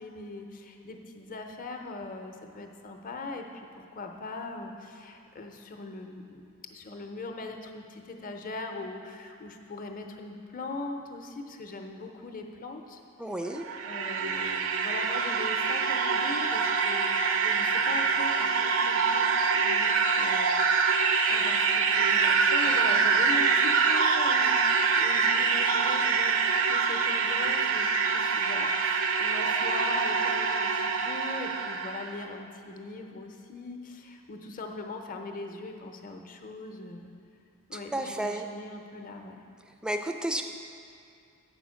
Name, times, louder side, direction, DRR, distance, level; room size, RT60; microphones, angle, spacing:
voice 1, 0.0-6.4 6.7-13.0 13.8-21.0 21.3-26.4 26.7-37.1 37.7-39.4, left 3 dB, 40° left, 3 dB, 0.6 m, -40 dB
voice 2, 13.2-13.6 37.7-38.5 39.7-40.4, right 1 dB, 5° right, 6 dB, 0.3 m, -32 dB
sound 1, 13.5-32.1, right 5 dB, 65° right, 0.4 m, -25 dB
8.9 x 4.3 x 6.2 m, 2.5 s
head